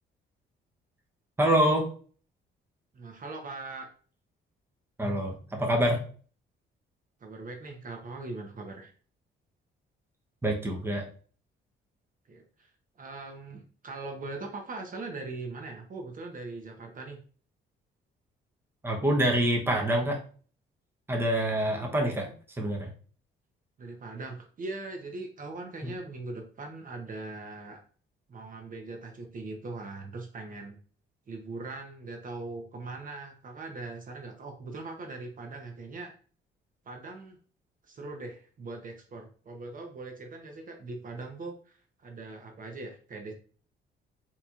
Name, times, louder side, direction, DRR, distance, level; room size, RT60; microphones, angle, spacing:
voice 1, 1.4-1.9 5.0-6.0 10.4-11.1 18.8-20.2 21.1-22.3 22.6-22.9 25.8-25.9, right 1 dB, 10° right, 1 dB, 0.9 m, -26 dB
voice 2, 2.9-3.9 7.2-8.9 12.3-12.7 13.0-17.2 21.5-22.3 23.8-27.8 28.3-30.8 31.3-36.1 36.9-37.4 37.8-43.3, right 3 dB, 45° right, 3 dB, 0.8 m, -41 dB
4.2 x 2.9 x 2.4 m, 0.42 s
cardioid pair, 90°, 20 cm